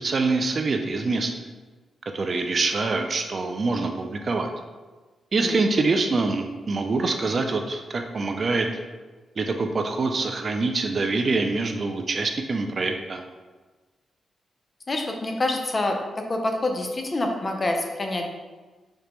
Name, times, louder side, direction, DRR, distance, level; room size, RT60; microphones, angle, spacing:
voice 1, 0.0-1.3 2.1-4.5 5.3-8.7 9.4-13.2, right 3 dB, 40° right, 5 dB, 0.3 m, -25 dB
voice 2, 14.9-18.3, left 2 dB, 30° left, 3 dB, 0.5 m, -27 dB
4.9 x 2.1 x 3.0 m, 1.3 s
cardioid pair, 115°, 0 cm